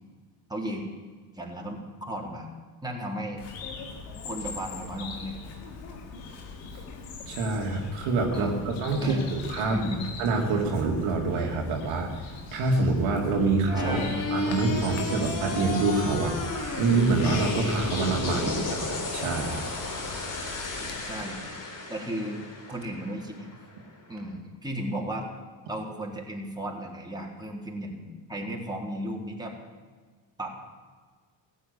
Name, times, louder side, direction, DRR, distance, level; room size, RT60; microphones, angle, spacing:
voice 1, 0.5-0.9 1.3-2.5 2.8-3.4 4.2-5.4 8.3-8.7 9.0-9.3 9.7-10.0 13.8-14.2 18.5-18.8 21.0-21.4 21.9-22.4 22.7-23.5 24.1-25.3 25.7-29.5 30.4-30.6, right 1 dB, 10° right, -1 dB, 3.8 m, -35 dB
Bird vocalization bird call bird song, 3.4-21.2, left 4 dB, 90° left, 2.0 m, -41 dB
voice 2, 7.3-9.8 10.2-14.0 14.3-19.6, right 3 dB, 75° right, 1 dB, 2.5 m, -26 dB
sound 1, 13.8-23.8, left 2 dB, 40° left, 3.6 m, -33 dB
15.0 x 8.4 x 9.7 m, 1.5 s
supercardioid pair, 60°, 49 cm